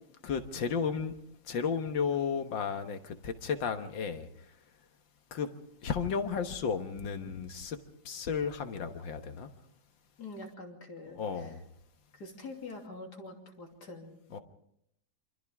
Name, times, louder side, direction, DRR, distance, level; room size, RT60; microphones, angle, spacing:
voice 1, 0.2-1.1 1.5-4.3 5.3-5.5 5.8-7.8 8.1-9.5 11.1-11.6 14.3-14.4, left 6 dB, 75° left, 2.1 m, -33 dB
voice 2, 10.2-11.5 12.1-14.4, left 2 dB, 55° left, 3.4 m, -45 dB
28.0 x 25.5 x 3.6 m
omnidirectional pair, 2.1 m